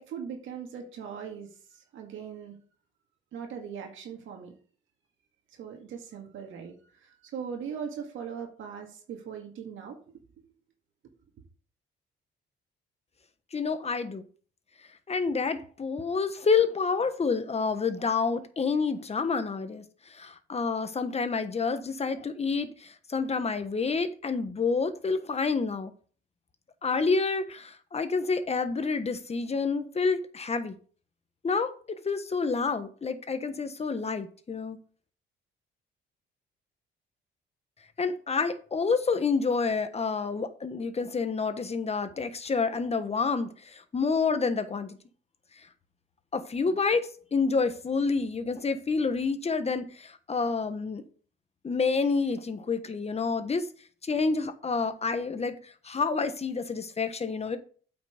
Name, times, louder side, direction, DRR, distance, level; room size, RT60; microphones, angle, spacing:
voice 1, 0.0-2.6 3.3-4.5 5.5-6.7 7.0-10.2, right 7 dB, 80° right, 2.0 m, -40 dB
voice 2, 13.5-14.2 15.1-25.9 26.8-30.8 31.4-31.7 32.0-34.8 38.0-45.0 46.3-51.0 51.6-53.7 54.0-57.6, left 4 dB, 30° left, 1.3 m, -28 dB
8.4 x 6.0 x 5.0 m
cardioid pair, 90°, 20 cm